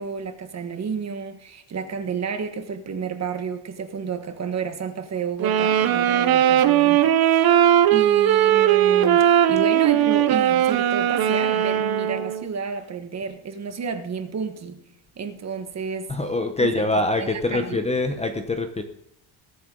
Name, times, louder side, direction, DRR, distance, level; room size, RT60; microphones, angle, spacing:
voice 1, 0.0-14.8 15.2-16.3 16.6-17.8, right 5 dB, 30° right, 1.4 m, -31 dB
sound 1, 5.4-12.5, right 11 dB, 45° right, 1.0 m, -19 dB
voice 2, 16.1-18.8, left 2 dB, 15° left, 0.8 m, -24 dB
20.5 x 8.5 x 3.9 m
cardioid pair, 165°, 50 cm